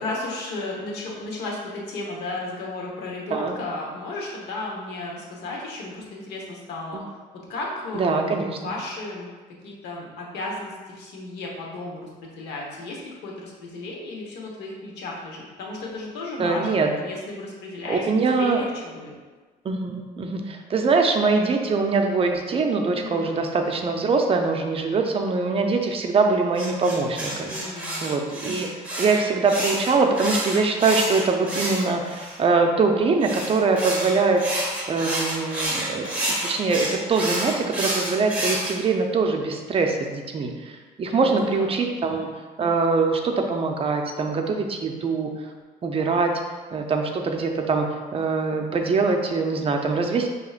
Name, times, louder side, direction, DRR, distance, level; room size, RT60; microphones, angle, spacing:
voice 1, 0.0-7.0 7.5-9.3 9.6-19.1 22.9-23.3 27.4-28.2 41.0-41.8, left 2 dB, 80° left, -2 dB, 1.1 m, -34 dB
voice 2, 7.9-8.6 16.4-16.9 17.9-18.6 19.6-27.5 28.0-28.7 29.0-34.4 34.9-36.1 36.4-40.5 41.0-42.3 42.6-45.3 45.8-46.3 46.7-47.9 48.1-50.3, right 4 dB, 35° right, 3 dB, 0.6 m, -23 dB
sound 1, 26.5-32.4 33.2-38.7, right 1 dB, 10° right, 1.2 m, -29 dB
6.5 x 2.9 x 2.4 m, 1.4 s
cardioid pair, 110°, 17 cm